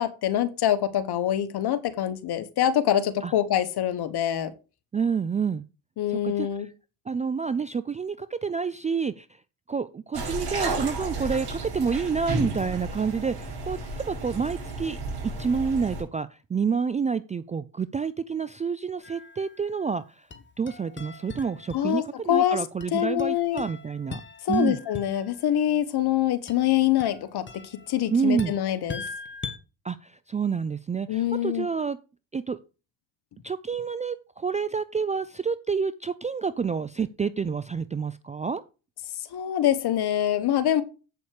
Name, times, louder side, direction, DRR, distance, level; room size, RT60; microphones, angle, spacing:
voice 1, 0.0-4.5 6.0-6.7 21.7-22.0 22.3-22.6 22.9-23.6 24.4-29.0 31.1-31.7 39.2-40.8, left 11 dB, 55° left, 1.6 m, -25 dB
voice 2, 4.9-5.6 6.1-6.5 7.1-9.3 9.7-13.8 14.1-15.0 15.4-20.3 20.6-24.2 24.5-24.8 28.1-28.5 29.8-32.0 32.3-32.6 33.4-38.6, right 5 dB, 15° right, 0.4 m, -28 dB
sound 1, 10.1-16.0, right 2 dB, 55° right, 5.9 m, -32 dB
sound 2, 19.0-19.9 20.3-22.3 22.8-25.4 26.5-29.6, left 4 dB, 25° left, 1.5 m, -41 dB
8.3 x 7.0 x 4.9 m
supercardioid pair, 85°, 47 cm